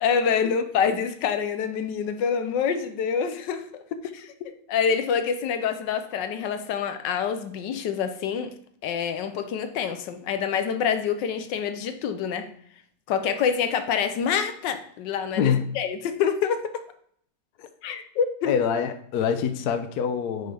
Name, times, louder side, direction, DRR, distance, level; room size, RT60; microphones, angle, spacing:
voice 1, 0.0-3.8 4.7-8.5 8.8-12.5 13.1-15.4 15.8-16.8 17.8-18.5, left 7 dB, 85° left, 1.4 m, -26 dB
voice 2, 15.4-15.7 17.6-17.7 18.4-20.5, left 7 dB, 70° left, 1.2 m, -25 dB
9.1 x 5.4 x 3.4 m
omnidirectional pair, 1.9 m